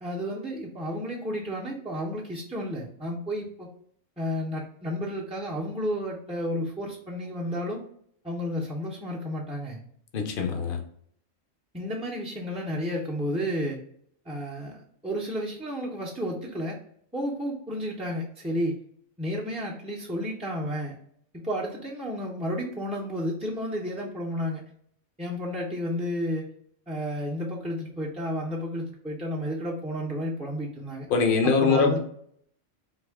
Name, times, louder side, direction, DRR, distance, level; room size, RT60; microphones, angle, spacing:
voice 1, 0.0-3.7 4.2-7.8 8.2-9.8 11.7-13.8 14.3-16.8 17.1-18.8 19.2-21.0 21.3-24.6 25.2-26.5 26.9-31.1 31.4-32.0, equal, 10° right, -6 dB, 0.5 m, -32 dB
voice 2, 10.1-10.8 31.1-32.0, left 5 dB, 50° left, 3 dB, 0.9 m, -23 dB
4.1 x 2.7 x 3.5 m, 0.65 s
omnidirectional pair, 1.3 m